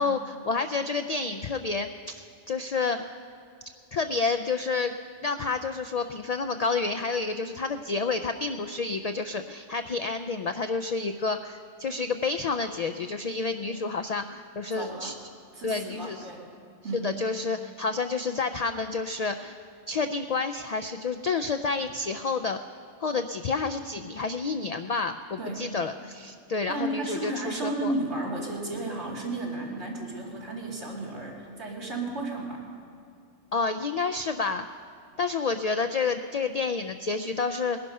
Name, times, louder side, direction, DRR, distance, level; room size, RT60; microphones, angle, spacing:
voice 1, 0.0-3.1 3.9-5.0 5.2-15.1 15.6-16.2 17.0-19.6 19.9-22.6 23.0-27.9 33.5-34.7 35.2-37.8, left 4 dB, 75° left, 7 dB, 0.3 m, -29 dB
voice 2, 14.7-15.1 15.5-16.5 16.8-17.1 25.4-25.7 26.7-32.7, right 2 dB, 65° right, -3 dB, 2.9 m, -33 dB
20.0 x 11.0 x 5.4 m, 2.3 s
omnidirectional pair, 1.3 m